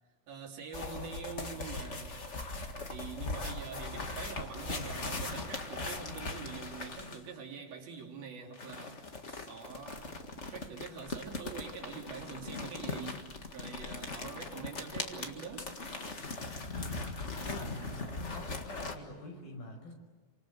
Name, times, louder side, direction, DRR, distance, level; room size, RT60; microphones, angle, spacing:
voice 1, 0.3-2.2 2.9-9.1 9.5-10.2 10.5-15.7 17.4-17.6, right 5 dB, 80° right, 5.0 m, -45 dB
sound 1, 0.7-7.3 8.5-18.9, left 3 dB, 40° left, 1.0 m, -40 dB
voice 2, 16.7-17.0 17.4-19.9, left 1 dB, 75° left, 7.5 m, -46 dB
28.0 x 26.0 x 8.0 m
omnidirectional pair, 4.2 m